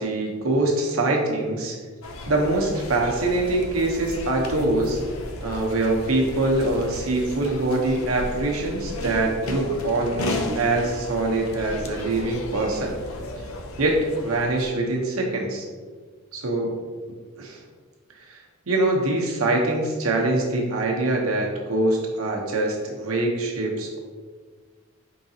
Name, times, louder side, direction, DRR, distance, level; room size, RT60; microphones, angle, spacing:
voice 1, 0.0-1.8 2.3-5.0 5.4-13.0 13.8-15.6 16.3-16.7 17.4-17.6 18.2-18.4 18.7-24.0, right 2 dB, 90° right, 0 dB, 0.8 m, -24 dB
sound 1, 2.0-14.8, left 2 dB, 90° left, 0.5 m, -34 dB
4.8 x 3.8 x 2.7 m, 1.5 s
head